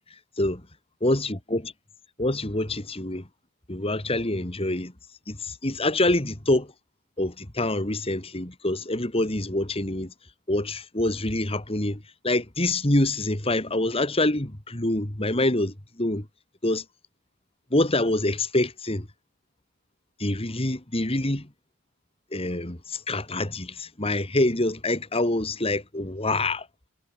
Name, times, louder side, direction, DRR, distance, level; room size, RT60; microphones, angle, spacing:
voice 1, 1.0-1.7 2.2-3.3 3.7-4.9 5.3-6.7 7.2-10.1 10.5-16.3 16.6-16.8 17.7-19.1 20.2-21.5 22.3-26.7, left 1 dB, 25° left, 2.3 m, -26 dB
head